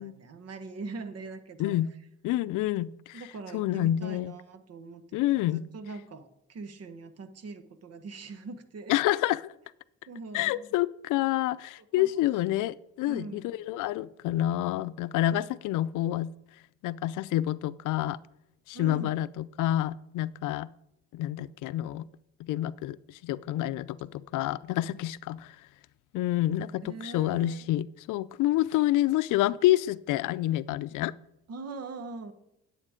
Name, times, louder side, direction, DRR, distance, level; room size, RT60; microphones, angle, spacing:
voice 1, 0.0-1.7 3.1-9.0 10.1-10.7 12.0-12.2 13.1-13.5 15.3-15.4 18.7-19.2 26.8-27.6 31.5-32.3, right 3 dB, 55° right, 11 dB, 1.2 m, -42 dB
voice 2, 1.6-1.9 2.2-3.2 3.5-4.3 5.1-5.6 8.9-9.5 10.3-16.3 16.8-18.2 18.7-20.7 21.1-22.1 22.4-25.6 26.1-31.2, left 14 dB, 85° left, 17 dB, 0.5 m, -28 dB
9.8 x 8.6 x 5.0 m, 0.81 s
cardioid pair, 90°, 30 cm